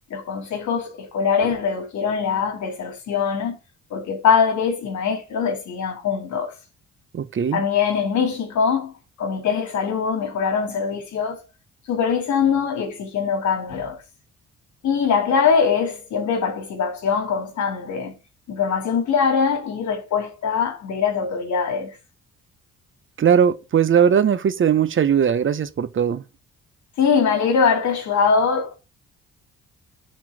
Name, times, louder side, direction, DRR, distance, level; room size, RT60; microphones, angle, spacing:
voice 1, 0.1-3.6 3.9-6.6 7.5-11.4 11.9-14.0 14.8-18.2 18.5-22.0 27.0-28.8, left 6 dB, 70° left, 2.4 m, -22 dB
voice 2, 7.1-7.6 23.2-26.2, right 8 dB, 40° right, 0.8 m, -19 dB
6.0 x 4.4 x 6.3 m
cardioid pair, 90°, 30 cm